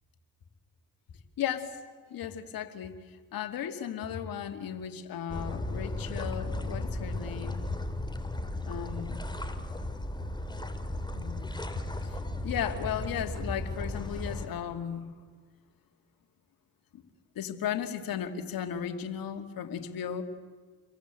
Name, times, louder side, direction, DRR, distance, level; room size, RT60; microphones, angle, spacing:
voice 1, 1.4-1.8 2.1-7.9 8.6-9.2 11.1-11.8 12.4-15.1 16.9-17.0 17.3-20.2, left 9 dB, 65° left, 7 dB, 2.6 m, -35 dB
sound 1, 5.3-14.5, left 1 dB, 10° left, 3.5 m, -35 dB
29.5 x 23.5 x 8.3 m, 1.5 s
hypercardioid pair, 45°, 37 cm